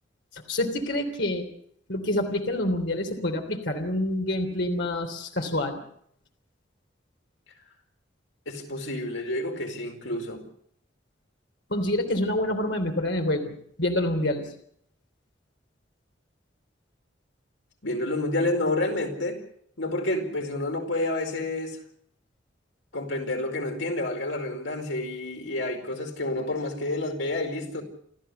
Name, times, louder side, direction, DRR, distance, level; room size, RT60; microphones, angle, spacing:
voice 1, 0.3-1.5 1.9-5.8 11.7-14.5, left 1 dB, 65° left, 4 dB, 3.3 m, -27 dB
voice 2, 8.5-10.4 17.8-19.4 19.8-21.8 22.9-27.8, left 2 dB, 85° left, 4 dB, 4.7 m, -29 dB
29.0 x 14.0 x 6.9 m, 0.67 s
head